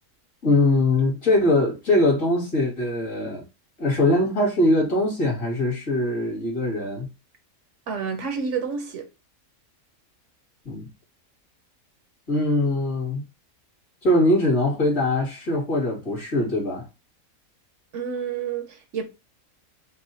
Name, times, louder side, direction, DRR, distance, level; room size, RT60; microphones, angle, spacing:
voice 1, 0.4-3.4 3.8-7.1 10.6-10.9 12.3-13.2 14.0-16.8, left 1 dB, 65° left, 2.7 m, -22 dB
voice 2, 7.9-9.1 17.9-19.0, right 6 dB, 65° right, 1.0 m, -29 dB
6.1 x 2.2 x 2.7 m
omnidirectional pair, 1.5 m